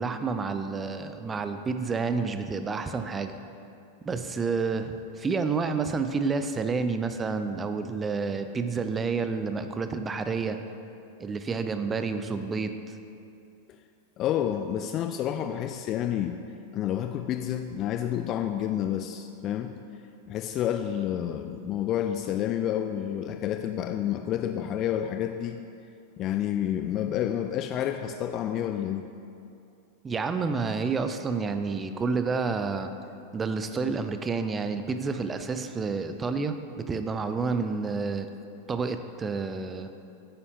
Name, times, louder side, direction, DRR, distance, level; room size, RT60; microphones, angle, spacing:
voice 1, 0.0-3.3 4.0-10.6 11.2-12.9 30.0-32.9 33.3-38.3 38.7-39.9, right 4 dB, 20° right, 9 dB, 0.5 m, -29 dB
voice 2, 14.2-16.4 16.7-19.8 20.3-25.6 26.2-29.1, left 10 dB, 35° left, 6 dB, 0.3 m, -29 dB
9.6 x 9.5 x 2.8 m, 2.6 s
figure-of-eight pair, 90°, 0 cm